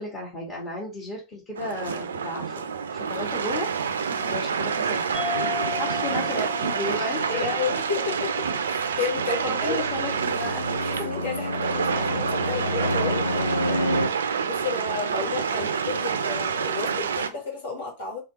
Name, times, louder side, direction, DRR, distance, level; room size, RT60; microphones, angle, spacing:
voice 1, 0.0-2.6 2.9-3.7 4.3-5.1 5.8-7.5 9.4-10.7 11.0-11.1 11.9-12.1 15.4-15.8, left 2 dB, 30° left, 1.4 m, -33 dB
sound 1, 1.6-17.3, right 6 dB, 65° right, 0.4 m, -28 dB
voice 2, 4.1-4.7 5.6-5.8 7.3-8.2 8.6-9.8 10.8-14.0 14.4-18.2, left 4 dB, 65° left, 2.0 m, -32 dB
sound 2, 5.1-10.1, left 6 dB, 10° right, 0.6 m, -37 dB
Fixed-wing aircraft airplane, 9.2-14.1, left 1 dB, 85° left, 0.6 m, -29 dB
3.3 x 3.0 x 2.8 m
figure-of-eight pair, 90°, 0 cm